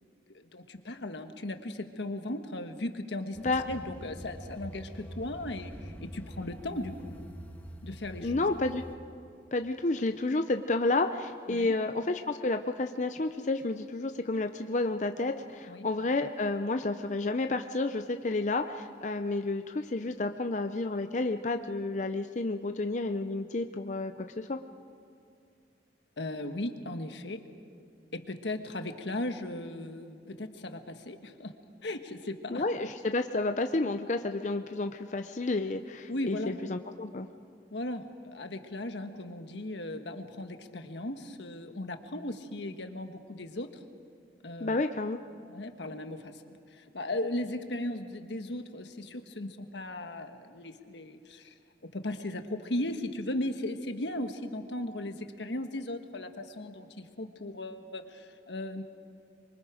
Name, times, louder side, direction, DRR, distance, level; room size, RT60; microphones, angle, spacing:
voice 1, 0.3-7.2 7.8-8.5 11.5-11.7 15.7-15.9 26.2-27.5 28.1-31.5 31.8-32.6 36.1-36.6 37.7-43.8 44.4-44.8 45.5-46.4 46.7-51.5 51.8-58.8, left 1 dB, 85° left, 7 dB, 1.4 m, -37 dB
sound 1, 3.3-8.9, equal, 10° left, 1.4 m, -45 dB
voice 2, 8.2-8.8 9.5-24.6 32.5-37.3 44.6-45.2, left 2 dB, 40° left, 7 dB, 0.6 m, -30 dB
26.0 x 23.5 x 5.1 m, 2.4 s
head